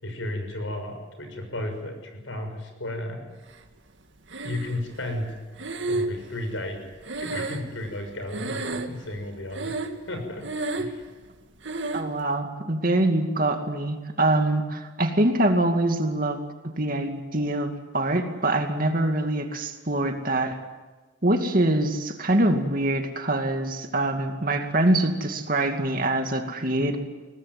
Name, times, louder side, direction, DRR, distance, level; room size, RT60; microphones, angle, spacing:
voice 1, 0.0-3.2 4.4-5.3 5.9-6.9 7.2-9.7 10.1-10.5 10.8-11.0, left 1 dB, 85° left, 5 dB, 6.4 m, -33 dB
Breathing, 4.3-5.0 5.6-8.1 8.3-9.1 9.5-10.1 10.4-11.0 11.6-12.1, right 2 dB, 75° right, 2.0 m, -31 dB
voice 2, 11.9-16.4 16.8-20.6 21.2-27.0, right 1 dB, 45° right, 5 dB, 2.5 m, -24 dB
23.0 x 18.5 x 9.7 m, 1.3 s
head